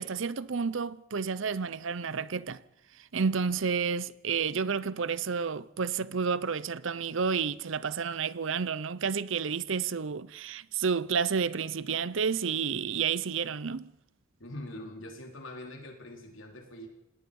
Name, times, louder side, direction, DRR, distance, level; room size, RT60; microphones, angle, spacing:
voice 1, 0.0-2.6 3.1-13.9, right 6 dB, 65° right, 0.7 m, -30 dB
voice 2, 14.4-16.9, left 1 dB, 65° left, 4.1 m, -43 dB
28.0 x 18.0 x 5.4 m
head